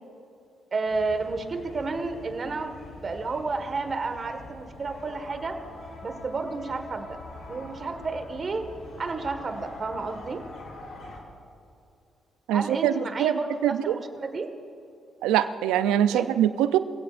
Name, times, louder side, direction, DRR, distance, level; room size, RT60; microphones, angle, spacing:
voice 1, 0.7-2.7 3.0-5.6 6.0-7.2 7.5-8.6 9.0-10.4 12.5-14.5 16.1-16.3, right 3 dB, 45° right, 7 dB, 1.7 m, -31 dB
sound 1, 0.9-11.2, left 2 dB, 70° left, 3.6 m, -44 dB
voice 2, 12.5-14.0 15.2-16.8, right 11 dB, 85° right, 12 dB, 0.6 m, -23 dB
25.5 x 16.5 x 2.6 m, 2.5 s
supercardioid pair, 50°, 0 cm